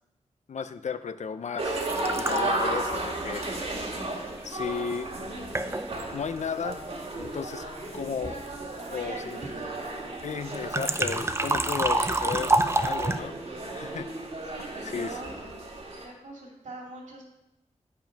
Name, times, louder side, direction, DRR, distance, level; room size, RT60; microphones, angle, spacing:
voice 1, 0.5-3.5 4.4-5.3 6.1-6.8 7.2-7.6 7.9-8.5 8.9-9.4 10.2-13.4 13.7-14.1 14.9-15.2, left 6 dB, 70° left, 11 dB, 0.6 m, -34 dB
sound 1, 1.6-16.0, right 2 dB, 55° right, 1.6 m, -34 dB
sound 2, 1.7-4.5 5.1-5.2 5.5-6.1 10.5-13.2, right 2 dB, 20° right, 0.5 m, -28 dB
voice 2, 8.7-9.9 10.7-11.1 14.4-15.3 16.0-17.2, right 2 dB, 80° right, 0 dB, 2.5 m, -42 dB
8.9 x 5.5 x 5.1 m, 0.87 s
wide cardioid pair, 85°, 13 cm